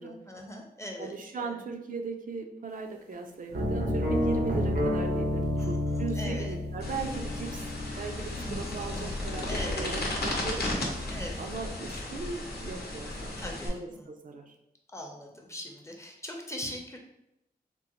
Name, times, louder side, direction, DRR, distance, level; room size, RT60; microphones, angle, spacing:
voice 1, 0.0-1.6 5.6-6.5 7.5-7.6 8.4-8.8 9.4-9.9 11.1-11.5 13.4-14.1 14.9-17.0, equal, 20° left, 1 dB, 0.6 m, -41 dB
voice 2, 1.0-7.7 8.0-10.7 11.4-14.5, right 4 dB, 60° right, 3 dB, 0.4 m, -38 dB
sound 1, 3.5-11.4, left 1 dB, 85° right, 0.8 m, -32 dB
sound 2, 6.8-13.7, left 2 dB, 80° left, 0.7 m, -35 dB
3.6 x 2.0 x 2.9 m, 0.83 s
wide cardioid pair, 65°, 16 cm